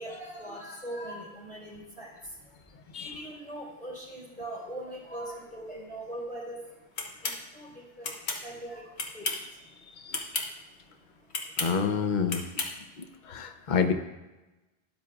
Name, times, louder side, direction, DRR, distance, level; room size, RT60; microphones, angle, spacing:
voice 1, 0.0-11.7 12.7-13.7, right 1 dB, 5° left, -5 dB, 3.7 m, -43 dB
sound 1, 7.0-7.4 8.0-8.4 9.0-9.5 10.1-10.5 11.3-11.7 12.3-12.7, left 3 dB, 75° left, 1.4 m, -32 dB
voice 2, 11.6-12.4 13.3-13.9, left 6 dB, 50° left, 7 dB, 0.8 m, -28 dB
12.5 x 11.0 x 2.3 m, 1.1 s
omnidirectional pair, 1.1 m